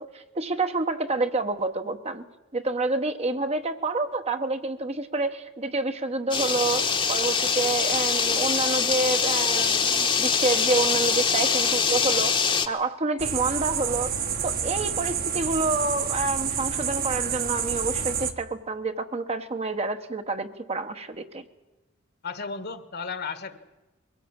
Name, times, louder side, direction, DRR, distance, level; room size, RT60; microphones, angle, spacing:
voice 1, 0.0-2.2 2.5-12.3 12.7-14.1 14.4-21.4, right 3 dB, 30° right, 8 dB, 1.1 m, -28 dB
sound 1, 6.3-12.7, left 6 dB, 25° left, 1.2 m, -23 dB
sound 2, 13.2-18.3, right 7 dB, 45° right, 1.4 m, -28 dB
voice 2, 22.2-23.6, left 5 dB, 55° left, 11 dB, 1.6 m, -34 dB
22.5 x 16.5 x 8.8 m, 1.1 s
head